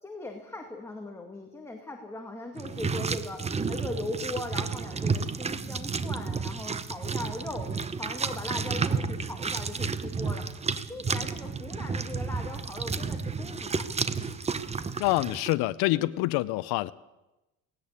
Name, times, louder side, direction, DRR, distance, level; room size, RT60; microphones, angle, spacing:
voice 1, 0.0-7.7 8.0-10.5 10.9-13.9 15.9-16.0, left 2 dB, 5° left, 2 dB, 2.1 m, -39 dB
sound 1, 2.6-15.5, right 5 dB, 15° right, 0.8 m, -31 dB
voice 2, 15.0-16.9, left 18 dB, 75° left, 14 dB, 0.7 m, -26 dB
18.5 x 17.5 x 8.6 m, 1.0 s
cardioid pair, 140°, 38 cm